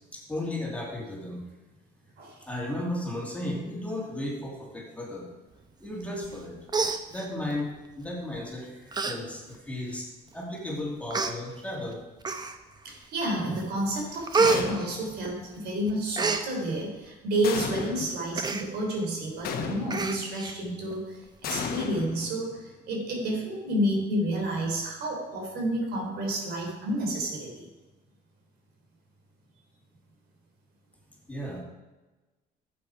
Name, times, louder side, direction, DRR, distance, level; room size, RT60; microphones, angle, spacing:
voice 1, 0.1-1.4 2.5-5.3 5.8-6.6 7.1-10.1 10.3-12.0 31.3-31.6, left 1 dB, 10° left, -2 dB, 2.8 m, -34 dB
Human voice, 6.2-6.4 6.7-7.6 8.4-8.5 8.9-9.2 9.5-9.6 10.4-10.5 11.1-11.3 12.2-12.8 13.3-13.6 13.9-15.6 15.9-16.4 18.4-18.7 19.0-19.1 19.4-19.5 19.9-20.5 20.9-21.0, right 4 dB, 25° right, 0.9 m, -28 dB
voice 2, 12.8-27.7, right 1 dB, 75° right, 1 dB, 3.5 m, -30 dB
sound 1, 14.4-15.2 17.4-18.2 19.4-20.2 21.4-22.7, left 5 dB, 65° left, 1.4 m, -34 dB
11.0 x 7.7 x 4.7 m, 1.2 s
cardioid pair, 110°, 17 cm